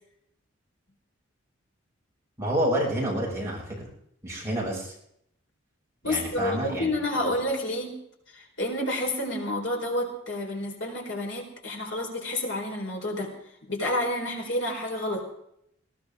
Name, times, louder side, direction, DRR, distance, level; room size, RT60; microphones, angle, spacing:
voice 1, 2.4-3.7 4.2-4.9 6.0-6.9 7.2-7.4, right 1 dB, 15° right, -4 dB, 6.7 m, -28 dB
voice 2, 6.0-8.0 8.3-13.3 13.7-15.2, left 1 dB, 70° left, 1 dB, 4.6 m, -29 dB
20.0 x 17.5 x 3.7 m, 0.72 s
head